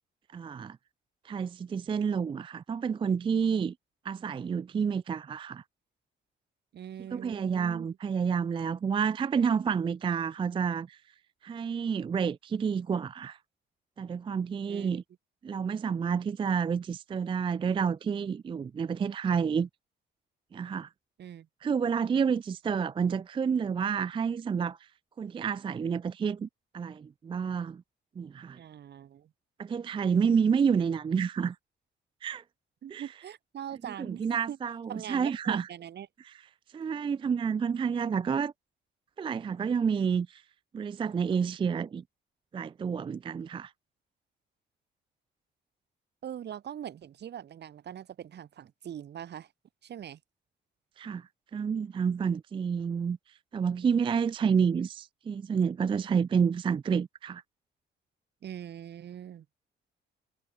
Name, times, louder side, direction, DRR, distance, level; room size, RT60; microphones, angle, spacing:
voice 1, 0.3-0.8 1.2-3.7 4.0-5.6 7.1-11.0 11.4-13.4 14.0-15.0 15.4-19.7 20.5-20.9 21.6-24.8 25.2-26.5 26.7-27.8 28.2-28.6 29.6-31.6 32.2-32.4 32.9-33.1 34.0-35.7 36.7-38.5 39.2-40.4 40.7-42.0 42.5-43.7 51.0-53.2 53.5-57.4, right 6 dB, 25° right, 0.3 m, -29 dB
voice 2, 6.7-7.9 14.7-15.0 21.2-21.5 28.6-29.3 32.8-34.2 34.5-34.6 34.9-36.1 46.2-49.5 49.8-50.2 58.4-59.4, right 10 dB, 60° right, 1.4 m, -42 dB
cardioid pair, 90°, 20 cm